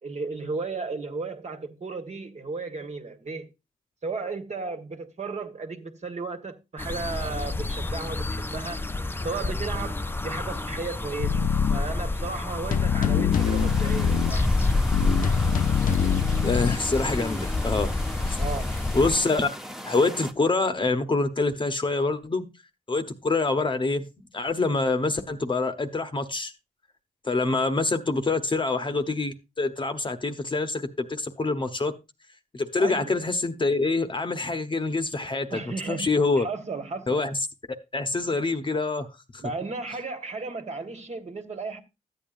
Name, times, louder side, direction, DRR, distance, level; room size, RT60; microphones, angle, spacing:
voice 1, 0.0-3.5 4.0-8.8 9.2-14.5 18.4-18.8 32.8-33.1 35.5-37.2 39.4-41.8, right 4 dB, 45° right, 1.6 m, -34 dB
sound 1, 6.8-19.2, left 2 dB, 15° left, 0.5 m, -28 dB
sound 2, 11.2-11.8 12.7-14.4 14.9-16.8, left 8 dB, 60° left, 0.5 m, -24 dB
sound 3, 13.3-20.3, equal, ahead, 0.9 m, -39 dB
voice 2, 16.4-17.9 18.3-18.4 18.9-19.5 19.8-22.4 22.9-24.1 24.3-26.5 27.2-31.9 32.5-36.5 37.1-37.4 37.9-39.1 39.3-39.4, left 3 dB, 30° left, 1.0 m, -26 dB
13.5 x 8.9 x 2.5 m
cardioid pair, 90°, 16 cm